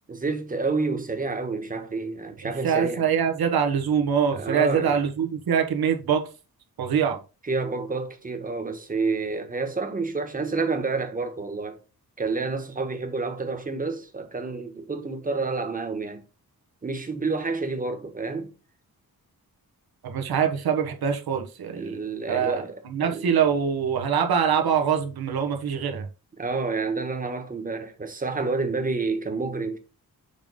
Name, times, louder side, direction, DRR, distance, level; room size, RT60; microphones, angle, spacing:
voice 1, 0.1-3.1 4.3-5.0 7.4-11.8 12.2-16.2 16.8-18.5 21.8-23.3 26.4-29.8, right 3 dB, 25° right, 1.2 m, -29 dB
voice 2, 2.4-6.2 6.8-7.2 20.0-22.0 22.3-26.1, right 7 dB, 85° right, 1.4 m, -24 dB
7.0 x 3.7 x 5.4 m
wide cardioid pair, 145°, 36 cm